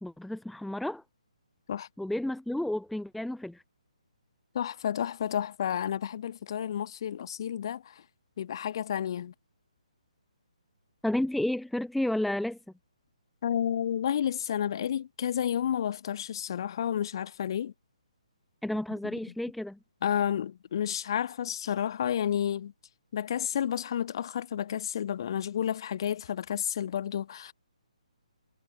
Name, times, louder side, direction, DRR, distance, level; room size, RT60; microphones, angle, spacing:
voice 1, 0.0-1.0 2.0-3.6 11.0-12.6 18.6-19.8, left 1 dB, ahead, 0.4 m, -31 dB
voice 2, 4.5-8.0 8.4-9.3 13.4-17.7 19.0-19.1 20.0-22.7 23.1-27.5, left 9 dB, 40° left, 1.5 m, -31 dB
figure-of-eight pair, 135°, 4 cm